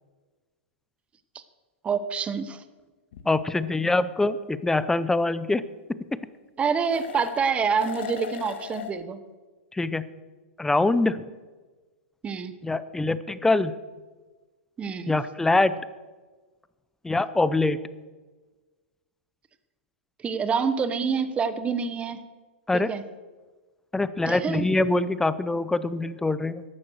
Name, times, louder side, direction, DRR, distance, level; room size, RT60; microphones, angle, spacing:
voice 1, 1.8-2.6 6.6-9.2 12.2-12.5 14.8-15.1 20.2-22.3 22.7-23.0 24.2-24.6, right 6 dB, 20° right, 12 dB, 1.0 m, -27 dB
sound 1, 3.1-3.2 6.8-7.5 7.8-8.9, left 7 dB, 65° left, 1.8 m, -36 dB
voice 2, 3.3-5.6 5.9-6.2 9.7-10.0 10.6-11.2 12.6-13.8 15.1-15.8 17.0-17.8 22.7-22.9 23.9-26.6, left 2 dB, 5° left, 16 dB, 0.6 m, -24 dB
13.5 x 11.5 x 6.4 m, 1.3 s
hypercardioid pair, 125°, 6 cm